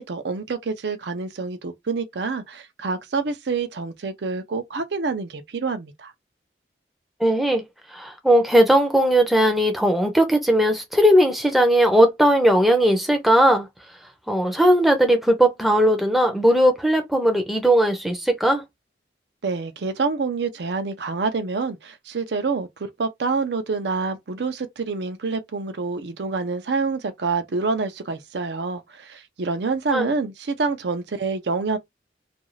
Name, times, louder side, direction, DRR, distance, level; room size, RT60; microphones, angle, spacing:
voice 1, 0.0-6.1 19.4-22.7 23.0-31.8, right 4 dB, 70° right, 0.5 m, -27 dB
voice 2, 7.2-7.6 7.9-13.7 14.3-18.6 29.9-30.1, equal, ahead, 0.5 m, -18 dB
2.5 x 2.3 x 3.1 m
head